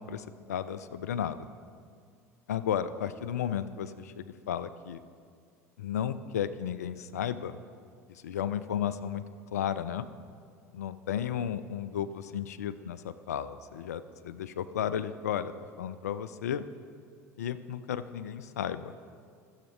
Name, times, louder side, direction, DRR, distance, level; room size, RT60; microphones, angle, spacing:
voice 1, 0.0-1.4 2.5-5.0 5.8-7.6 8.1-9.2 9.5-10.1 10.7-16.6 17.4-18.9, left 9 dB, 80° left, 14 dB, 0.4 m, -34 dB
15.5 x 7.3 x 3.0 m, 2.2 s
hypercardioid pair, 70°, 8 cm